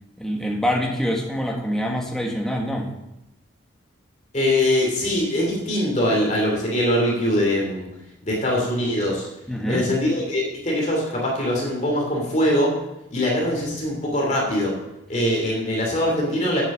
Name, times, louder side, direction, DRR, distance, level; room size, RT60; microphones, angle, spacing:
voice 1, 0.2-2.9 9.5-9.9, equal, ahead, 0 dB, 1.6 m, -25 dB
voice 2, 4.3-7.9 8.2-9.3 9.7-12.8 13.1-14.7 15.1-16.7, left 1 dB, 35° left, -2 dB, 2.7 m, -22 dB
8.3 x 8.2 x 7.2 m, 0.91 s
head